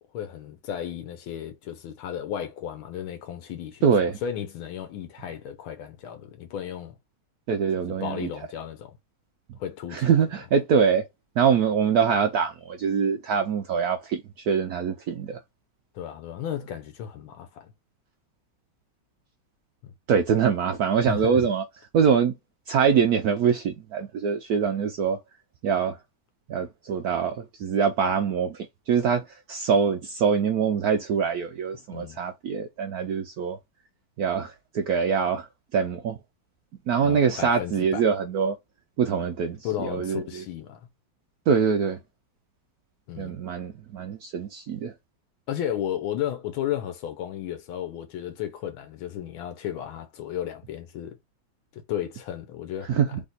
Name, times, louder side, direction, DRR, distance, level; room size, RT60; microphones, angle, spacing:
voice 1, 0.1-3.8 4.2-6.9 8.0-9.0 9.6-10.1 15.9-17.7 19.8-19.9 21.1-21.5 31.9-32.2 37.0-38.0 39.6-40.8 43.1-43.3 45.5-51.2 51.7-53.0, left 10 dB, 80° left, 1.5 m, -34 dB
voice 2, 3.8-4.2 7.5-8.3 9.9-11.1 11.4-15.4 20.1-21.6 21.9-22.3 22.7-25.2 25.6-26.0 26.5-33.6 34.2-35.5 35.7-36.2 36.9-38.6 39.0-40.4 41.5-42.0 43.2-44.9 52.9-53.2, right 6 dB, 85° right, 0.8 m, -24 dB
3.6 x 3.2 x 3.9 m
omnidirectional pair, 2.3 m